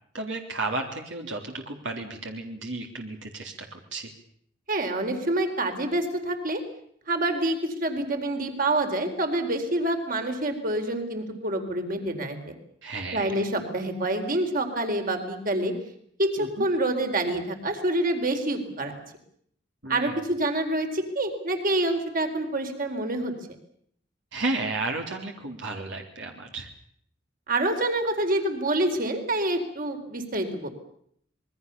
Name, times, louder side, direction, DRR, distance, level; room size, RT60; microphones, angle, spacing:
voice 1, 0.1-4.1 12.8-13.4 16.4-16.7 19.8-20.2 24.3-26.7, right 2 dB, 75° right, 2 dB, 3.6 m, -33 dB
voice 2, 4.7-6.6 7.1-12.5 13.1-15.7 16.2-18.9 19.9-23.3 27.5-30.7, right 1 dB, 45° right, 6 dB, 4.3 m, -27 dB
27.0 x 22.0 x 7.0 m, 0.67 s
head